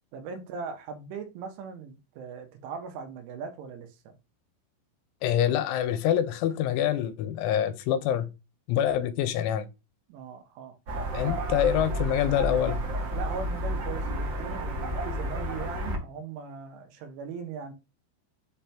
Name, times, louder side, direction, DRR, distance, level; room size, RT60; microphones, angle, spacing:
voice 1, 0.1-4.2 10.1-10.8 13.1-17.7, right 5 dB, 85° right, 3.5 m, -39 dB
voice 2, 5.2-8.3 8.7-9.7 11.1-12.8, left 10 dB, 90° left, 3.0 m, -26 dB
sound 1, 10.9-16.0, equal, 65° right, 1.6 m, -31 dB
7.3 x 3.4 x 4.3 m
omnidirectional pair, 5.4 m